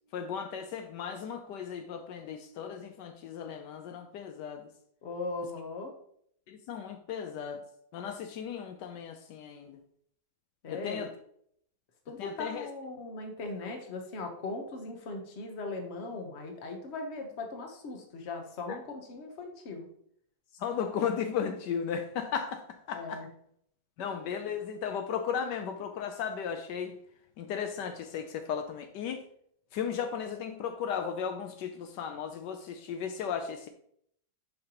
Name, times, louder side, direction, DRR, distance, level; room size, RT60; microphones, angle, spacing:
voice 1, 0.1-4.7 6.5-7.7 7.9-9.8 10.7-11.1 12.2-12.7 18.7-18.8 20.6-22.6 22.9-23.2 24.0-26.9 27.4-29.3 29.7-33.7, left 7 dB, 75° left, 7 dB, 1.2 m, -35 dB
voice 2, 5.0-5.9 10.6-11.0 12.1-19.9 22.9-23.3, left 3 dB, 45° left, 4 dB, 1.1 m, -39 dB
7.7 x 5.3 x 2.9 m, 0.68 s
omnidirectional pair, 1.9 m